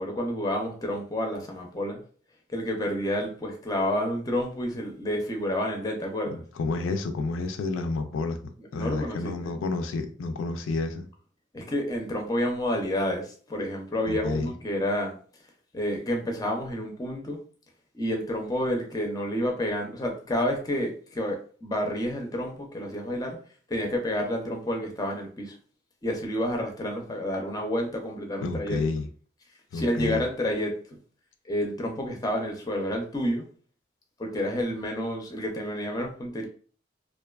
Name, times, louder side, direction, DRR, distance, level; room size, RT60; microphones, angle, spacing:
voice 1, 0.0-2.0 2.5-6.4 8.6-9.5 11.5-15.2 15.7-17.4 17.9-23.4 23.7-25.6 26.0-28.8 29.7-30.8 31.4-33.5 34.2-36.5, equal, 20° left, 2 dB, 0.5 m, -29 dB
voice 2, 6.3-11.1 14.1-14.5 28.4-29.1 29.7-30.2, left 3 dB, 90° left, 6 dB, 0.3 m, -30 dB
2.5 x 2.2 x 2.2 m, 0.42 s
head